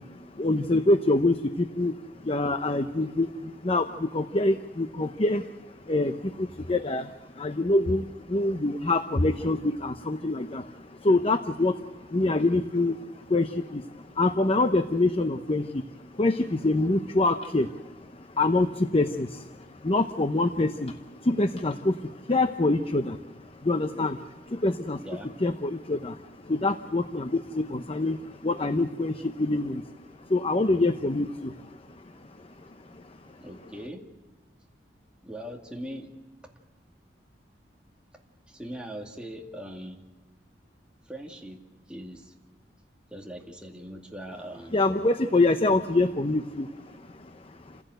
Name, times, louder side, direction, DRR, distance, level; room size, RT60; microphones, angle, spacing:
voice 1, 0.0-25.1 25.4-30.0 30.3-33.4 44.7-47.8, left 2 dB, 35° left, 8 dB, 0.8 m, -26 dB
voice 2, 33.4-34.0 35.2-36.2 38.5-40.0 41.0-42.4 43.1-44.8, equal, 5° right, 0 dB, 2.3 m, -40 dB
28.5 x 16.5 x 7.9 m, 1.2 s
head